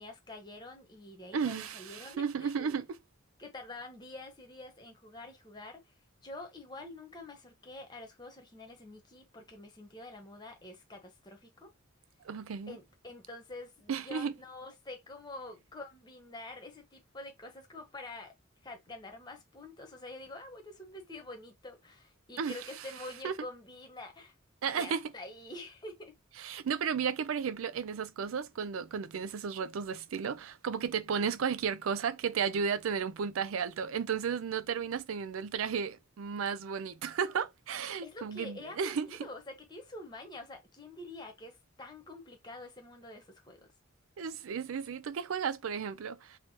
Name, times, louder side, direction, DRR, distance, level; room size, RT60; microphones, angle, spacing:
voice 1, 0.0-2.8 3.4-5.8 6.2-11.7 12.7-18.3 18.6-24.3 24.7-26.1 38.0-43.7, left 2 dB, 20° left, 0.9 m, -47 dB
voice 2, 1.3-2.9 12.2-12.8 13.9-14.3 22.4-22.6 23.2-23.3 24.6-25.0 26.4-39.3 44.2-46.4, right 6 dB, 90° right, 0.4 m, -34 dB
3.2 x 3.0 x 2.9 m
head